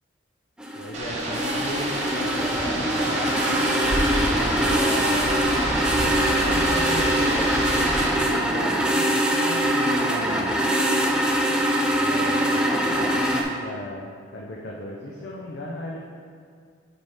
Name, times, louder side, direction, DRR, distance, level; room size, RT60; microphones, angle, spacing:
sound 1, 0.6-13.4, right 1 dB, 5° right, 0.4 m, -23 dB
voice 1, 0.7-3.4 4.6-9.1 9.4-10.6 12.0-16.0, left 1 dB, 55° left, -3 dB, 0.6 m, -35 dB
sound 2, 0.9-8.1, right 1 dB, 35° right, 0.8 m, -27 dB
6.6 x 4.1 x 3.5 m, 2.1 s
head